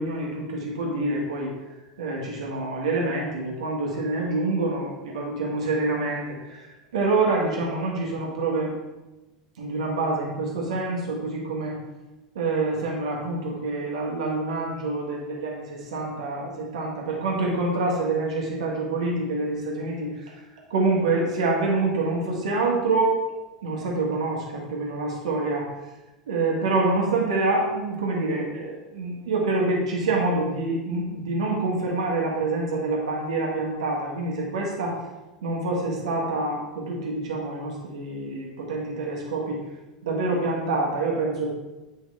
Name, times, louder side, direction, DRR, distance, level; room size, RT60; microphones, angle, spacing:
voice 1, 0.0-1.5 2.0-6.6 6.9-8.8 9.6-11.8 12.4-20.4 20.7-23.2 23.6-25.7 26.3-35.0 35.4-39.6 40.0-41.5, right 2 dB, 65° right, -2 dB, 1.9 m, -26 dB
8.3 x 5.6 x 3.5 m, 1.1 s
figure-of-eight pair, 85°, 4 cm